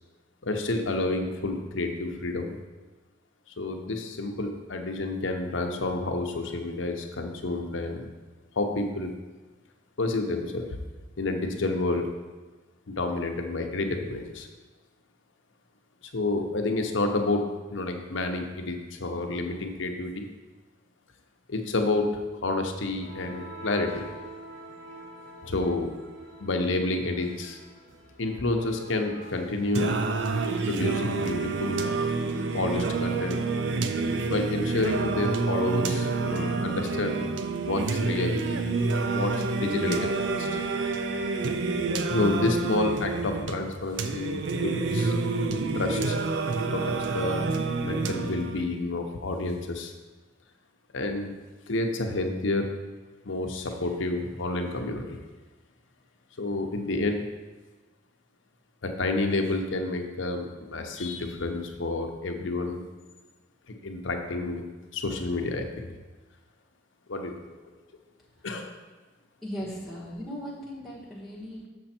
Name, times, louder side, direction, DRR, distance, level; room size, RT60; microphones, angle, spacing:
voice 1, 0.4-2.5 3.6-8.1 8.6-9.1 10.0-10.8 11.2-12.1 12.9-14.5 16.1-17.4 17.7-20.3 21.5-24.1 25.4-25.9 26.4-27.6 28.2-30.0 30.7-31.8 32.5-33.4 34.3-37.2 37.6-38.8 39.1-40.5 42.1-45.1 45.7-46.2 46.7-47.5 47.8-49.9 50.9-51.3 51.7-52.7 53.2-55.2 56.4-57.2 58.8-62.8 63.7-64.6 64.9-65.9 67.1-67.6 68.4-68.7, left 2 dB, 75° left, 4 dB, 0.9 m, -29 dB
sound 1, 22.5-34.4, equal, 80° right, 1.9 m, -47 dB
Singing, 29.7-48.7, right 3 dB, 65° right, 0.5 m, -28 dB
voice 2, 69.4-71.7, equal, ahead, -8 dB, 1.4 m, -37 dB
6.8 x 6.6 x 4.4 m, 1.3 s
head